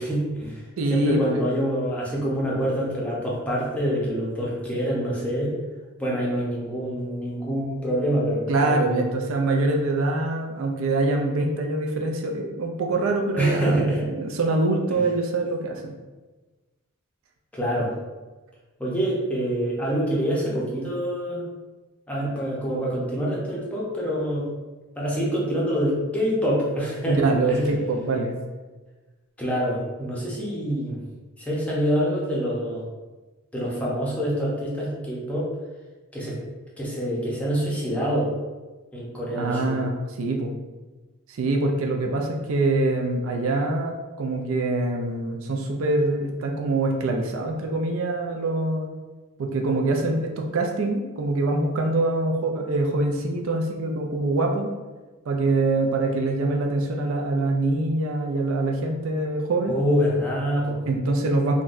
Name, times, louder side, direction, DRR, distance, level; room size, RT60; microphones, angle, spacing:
voice 1, 0.0-0.6 0.9-5.5 6.0-9.1 13.4-14.1 14.9-15.0 17.5-17.9 18.8-21.4 22.1-24.5 24.9-27.7 29.4-31.0 31.4-32.8 33.5-35.5 36.1-36.4 36.8-38.3 38.9-39.8 59.7-60.8, equal, 5° left, -6 dB, 0.6 m, -26 dB
voice 2, 0.8-1.4 8.5-15.9 27.1-28.4 39.4-40.6 41.3-48.9 49.4-54.7 55.3-59.7 60.9-61.6, right 2 dB, 65° right, 2 dB, 0.4 m, -24 dB
3.8 x 2.2 x 2.5 m, 1.2 s
head